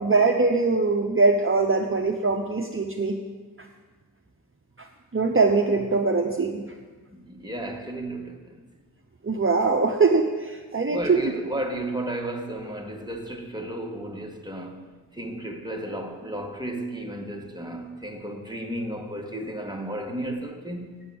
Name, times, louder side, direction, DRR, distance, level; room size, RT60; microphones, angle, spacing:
voice 1, 0.0-3.2 3.6-3.7 4.8-4.9 5.1-6.7 9.2-11.2, right 3 dB, 35° right, 0.8 m, -22 dB
voice 2, 7.1-8.6 10.9-21.0, right 1 dB, 10° right, 1.6 m, -33 dB
8.0 x 7.8 x 8.6 m
wide cardioid pair, 45°, 36 cm